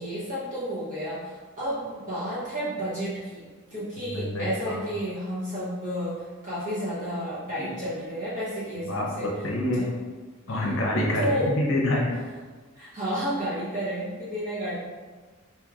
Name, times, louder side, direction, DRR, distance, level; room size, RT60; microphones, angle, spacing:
voice 1, 0.0-9.3 9.7-9.9 10.5-10.7 11.1-11.5 12.7-14.8, equal, 35° right, -9 dB, 0.8 m, -31 dB
voice 2, 4.0-4.8 7.6-7.7 8.8-9.9 10.5-12.1, left 1 dB, 65° left, -2 dB, 0.7 m, -27 dB
4.3 x 3.0 x 2.4 m, 1.4 s
head